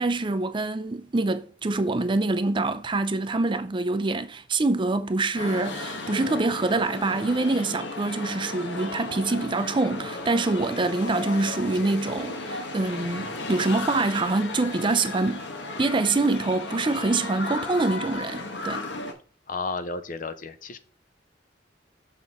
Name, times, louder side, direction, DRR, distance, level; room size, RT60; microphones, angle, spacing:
voice 1, 0.0-15.5 15.8-18.9, right 2 dB, 25° right, 0.5 m, -25 dB
sound 1, 5.3-19.1, left 2 dB, 80° left, 1.2 m, -35 dB
voice 2, 19.5-20.8, left 4 dB, 50° left, 0.7 m, -32 dB
6.6 x 5.8 x 3.6 m
head